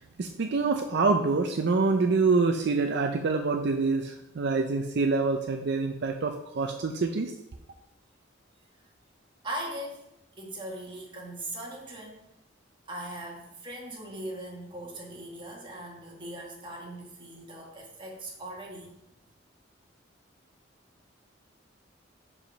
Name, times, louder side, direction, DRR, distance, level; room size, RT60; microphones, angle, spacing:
voice 1, 0.2-7.3, right 4 dB, 65° right, 4 dB, 0.5 m, -26 dB
voice 2, 9.4-10.1 10.4-12.2 12.9-19.0, right 1 dB, 25° right, -2 dB, 1.6 m, -40 dB
5.0 x 4.9 x 5.7 m, 0.87 s
head